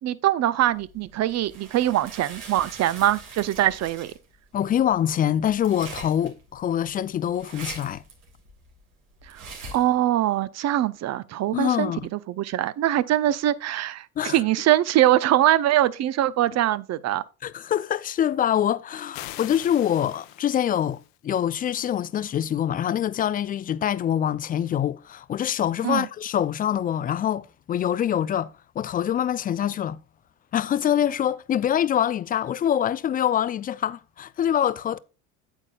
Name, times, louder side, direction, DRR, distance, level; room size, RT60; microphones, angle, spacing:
voice 1, 0.0-4.1 9.3-9.4 9.7-17.2 25.8-26.1, right 13 dB, 40° right, 0.7 m, -23 dB
sound 1, 0.7-9.9, right 3 dB, 85° right, 3.0 m, -43 dB
voice 2, 4.5-8.0 11.5-12.1 14.2-14.4 17.4-30.0 30.5-35.0, left 10 dB, 25° left, 0.3 m, -25 dB
sound 2, 19.1-21.2, left 15 dB, 70° left, 1.0 m, -42 dB
8.9 x 8.2 x 2.3 m
hypercardioid pair, 80°, 42 cm